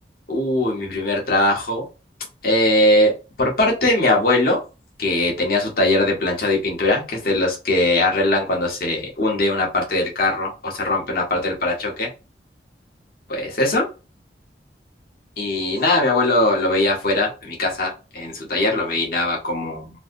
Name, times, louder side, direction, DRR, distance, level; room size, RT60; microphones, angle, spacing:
voice 1, 0.3-1.8 2.4-3.1 3.4-4.6 5.0-12.1 13.3-13.9 15.4-19.9, left 2 dB, 55° left, 0 dB, 1.1 m, -20 dB
3.2 x 2.7 x 2.5 m, 0.30 s
head